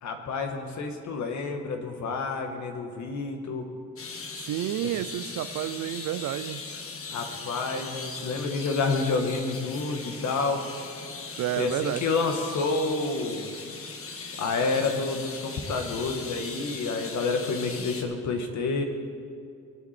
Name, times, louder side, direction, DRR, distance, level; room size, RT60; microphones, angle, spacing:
voice 1, 0.0-3.7 4.8-4.9 7.1-10.6 11.6-13.5 14.4-18.8, left 4 dB, 70° left, 5 dB, 1.6 m, -29 dB
sound 1, 4.0-18.0, left 4 dB, 45° left, 1.4 m, -39 dB
voice 2, 4.4-6.6 11.4-12.0, right 13 dB, 75° right, 14 dB, 0.6 m, -30 dB
21.5 x 7.9 x 4.4 m, 2.3 s
cardioid pair, 90°, 30 cm